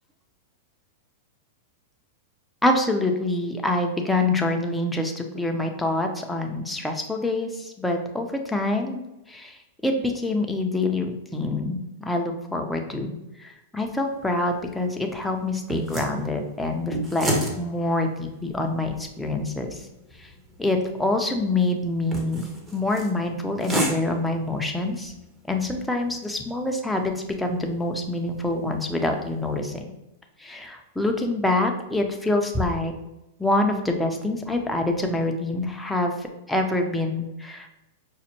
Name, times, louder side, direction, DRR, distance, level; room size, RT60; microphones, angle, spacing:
voice 1, 2.6-9.0 9.3-17.3 17.6-19.9 20.2-20.3 20.6-25.1 25.4-29.8 30.4-32.9 33.4-37.7, left 2 dB, 5° left, 2 dB, 0.5 m, -26 dB
sound 1, 14.0-29.8, right 1 dB, 20° right, 0.8 m, -35 dB
5.1 x 2.1 x 2.8 m, 0.95 s
hypercardioid pair, 130°, 0 cm